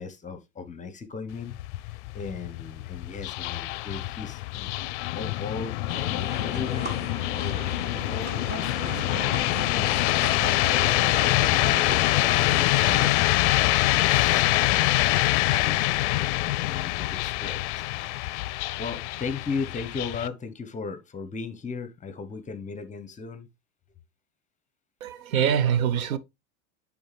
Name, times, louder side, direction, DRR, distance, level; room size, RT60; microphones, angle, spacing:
voice 1, 0.0-1.5 2.1-4.7 5.1-5.7 6.2-7.0 7.3-7.7 8.1-11.0 11.6-12.0 13.9-15.2 15.5-17.8 18.4-23.5, left 5 dB, 20° left, 0.8 m, -37 dB
sound 1, 1.3-20.3, left 18 dB, 55° left, 0.5 m, -25 dB
sound 2, 5.9-13.1, right 1 dB, 25° right, 2.0 m, -37 dB
voice 2, 25.0-26.2, right 8 dB, 75° right, 0.8 m, -24 dB
10.0 x 3.8 x 3.2 m
hypercardioid pair, 90°, 42 cm